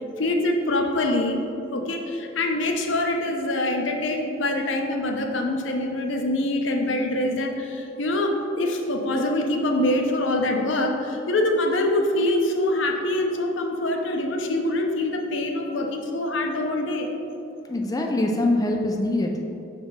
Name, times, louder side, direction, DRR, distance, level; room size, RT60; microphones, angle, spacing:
voice 1, 0.2-1.4 1.7-17.1, left 1 dB, 75° left, 2 dB, 0.7 m, -24 dB
voice 2, 17.7-19.4, left 1 dB, 20° left, 1 dB, 0.4 m, -23 dB
5.7 x 4.3 x 5.4 m, 2.7 s
head